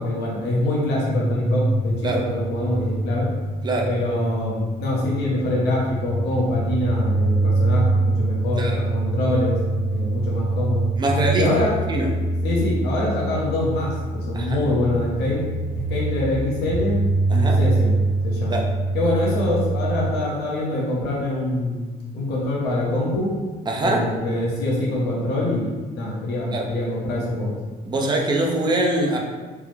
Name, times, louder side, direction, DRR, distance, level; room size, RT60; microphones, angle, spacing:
voice 1, 0.0-3.3 3.9-9.6 9.9-10.9 11.3-11.7 12.4-13.9 14.3-15.4 15.9-17.0 17.3-18.6 18.9-21.9 22.1-23.3 23.8-27.5, left 1 dB, 80° left, -4 dB, 0.9 m, -24 dB
sound 1, 0.9-20.1, right 2 dB, 50° left, 1.0 m, -24 dB
voice 2, 11.0-11.5 11.9-12.1 14.3-14.6 17.3-17.6 18.5-18.6 23.7-24.0 26.5-26.7 27.9-29.2, right 2 dB, 25° right, 0 dB, 0.5 m, -23 dB
3.4 x 2.0 x 3.2 m, 1.3 s
cardioid pair, 110°, 17 cm